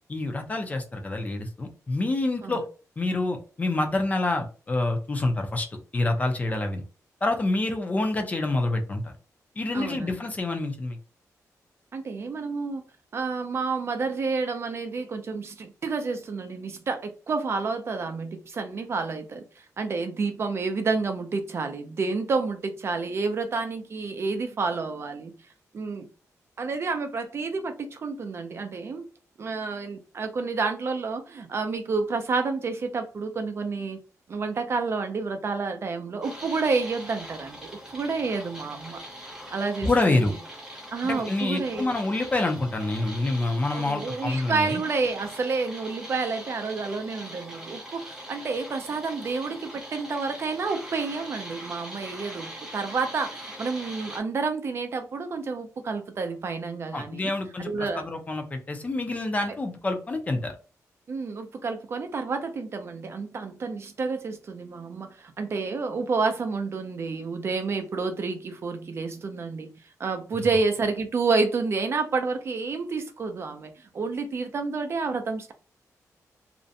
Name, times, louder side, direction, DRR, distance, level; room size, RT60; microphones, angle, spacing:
voice 1, 0.1-2.6 3.0-5.7 5.9-6.8 7.2-9.1 9.6-11.0 39.8-40.3 41.0-44.8 56.9-60.5 70.3-70.4, left 2 dB, 25° left, 0.4 m, -27 dB
voice 2, 9.7-10.1 11.9-12.8 13.1-19.4 19.8-25.3 25.7-26.1 26.6-29.0 29.4-34.0 34.3-39.0 39.5-40.2 40.9-41.9 43.7-57.3 57.6-58.0 61.1-69.7 70.0-75.5, right 4 dB, 45° right, 0.4 m, -29 dB
sound 1, 36.2-54.2, equal, 10° right, 0.7 m, -42 dB
2.4 x 2.1 x 2.6 m
wide cardioid pair, 150°, 6 cm